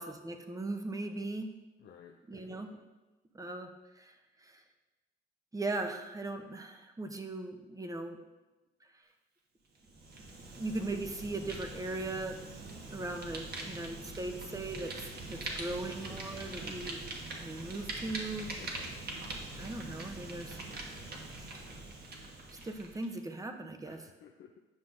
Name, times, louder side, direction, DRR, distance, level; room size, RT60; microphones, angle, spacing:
voice 1, 0.0-1.5 2.3-2.7 3.3-3.7 4.0-4.6 5.5-8.2 10.5-12.4 12.9-14.9 15.2-17.0 17.4-18.5 19.6-20.6 22.6-24.0, right 2 dB, 15° right, 6 dB, 0.7 m, -38 dB
voice 2, 1.8-2.7 15.8-16.1 18.6-19.0 23.9-24.6, left 8 dB, 65° left, 1 dB, 0.6 m, -55 dB
Fire, 9.8-23.1, right 2 dB, 50° right, 1.3 m, -43 dB
9.5 x 5.7 x 2.6 m, 1.1 s
cardioid pair, 90°, 20 cm